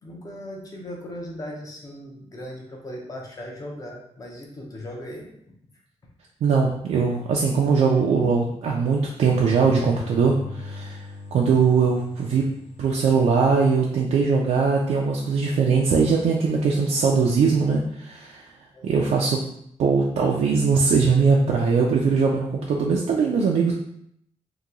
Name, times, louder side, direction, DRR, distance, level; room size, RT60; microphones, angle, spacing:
voice 1, 0.0-5.5 18.7-19.1, equal, 30° left, -1 dB, 0.6 m, -38 dB
voice 2, 6.4-11.0 11.3-12.5 12.8-18.4 18.8-19.4 19.8-23.7, right 5 dB, 85° right, -1 dB, 0.4 m, -21 dB
sound 1, 9.1-13.8 17.0-17.6, left 3 dB, 75° left, 0.5 m, -41 dB
2.9 x 2.2 x 3.6 m, 0.71 s
wide cardioid pair, 165°, 11 cm